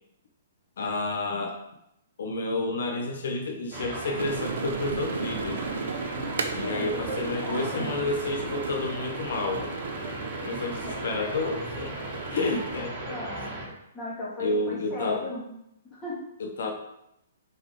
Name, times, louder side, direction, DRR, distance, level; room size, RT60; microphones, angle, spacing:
voice 1, 0.8-1.6 2.2-5.7 6.5-9.7 10.4-13.5 14.4-15.3 16.4-16.7, left 2 dB, 65° left, 3 dB, 1.2 m, -30 dB
sound 1, 3.7-13.7, right 2 dB, 30° right, 1.8 m, -36 dB
sound 2, 4.2-12.8, right 5 dB, 75° right, 1.0 m, -36 dB
voice 2, 6.1-6.5 6.7-7.9 12.2-12.6 13.1-13.5 13.9-15.4 15.9-16.2, left 2 dB, 10° left, -9 dB, 2.4 m, -36 dB
7.0 x 4.7 x 5.0 m, 0.80 s
hypercardioid pair, 170°, 0 cm